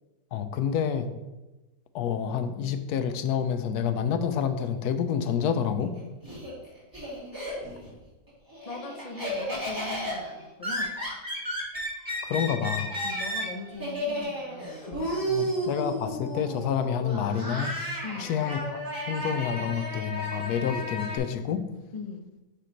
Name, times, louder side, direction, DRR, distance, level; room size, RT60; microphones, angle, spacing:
voice 1, 0.3-1.1 1.9-5.9 12.2-12.9 15.3-17.7 18.2-21.6, left 7 dB, 90° left, 10 dB, 1.1 m, -28 dB
Laughter, 5.8-7.9 8.3-21.2, equal, 15° right, 2.2 m, -33 dB
voice 2, 8.6-11.0 13.0-15.5 18.0-18.4 21.9-22.3, left 3 dB, 50° left, 5 dB, 0.4 m, -40 dB
9.1 x 3.7 x 3.8 m, 1.1 s
omnidirectional pair, 1.6 m